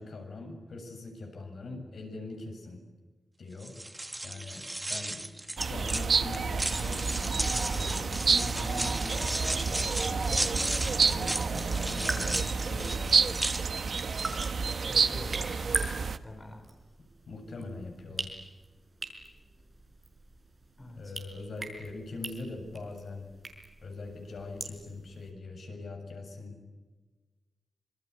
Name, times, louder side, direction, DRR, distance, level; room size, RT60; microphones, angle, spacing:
voice 1, 0.0-2.8 3.4-3.7 4.2-5.2 5.6-13.3 17.3-18.3 21.0-23.3 23.8-26.6, left 2 dB, 65° left, 4 dB, 7.4 m, -42 dB
sound 1, 3.6-14.7, right 1 dB, 10° right, 1.3 m, -35 dB
sound 2, 5.6-16.2, right 5 dB, 55° right, 1.3 m, -29 dB
sound 3, 11.0-25.3, right 3 dB, 30° right, 5.6 m, -42 dB
voice 2, 14.9-16.7 20.8-21.1, left 1 dB, 25° left, 3 dB, 5.3 m, -47 dB
26.5 x 26.5 x 8.3 m, 1.2 s
wide cardioid pair, 175°, 0 cm